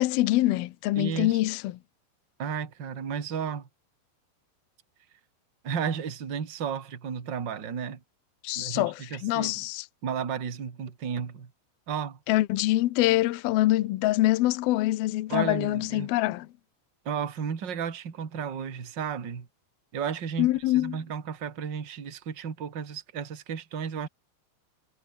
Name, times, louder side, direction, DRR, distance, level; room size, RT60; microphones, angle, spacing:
voice 1, 0.0-1.7 8.4-9.9 12.3-16.5 20.4-21.0, left 17 dB, 85° left, 2.1 m, -25 dB
voice 2, 1.0-1.4 2.4-3.7 5.6-8.0 8.6-9.7 10.0-11.5 11.9-12.2 15.3-16.1 17.0-19.5 19.9-20.5 20.7-24.1, right 7 dB, 35° right, 1.8 m, -33 dB
omnidirectional pair, 5.7 m